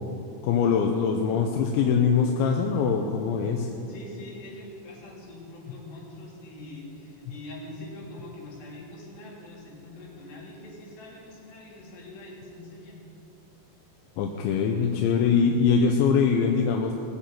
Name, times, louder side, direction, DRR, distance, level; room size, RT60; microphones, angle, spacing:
voice 1, 0.4-3.7 14.2-16.9, left 6 dB, 80° left, 2 dB, 2.9 m, -23 dB
voice 2, 3.9-13.0, left 1 dB, 60° left, -5 dB, 5.1 m, -43 dB
20.5 x 7.2 x 7.5 m, 2.8 s
omnidirectional pair, 5.6 m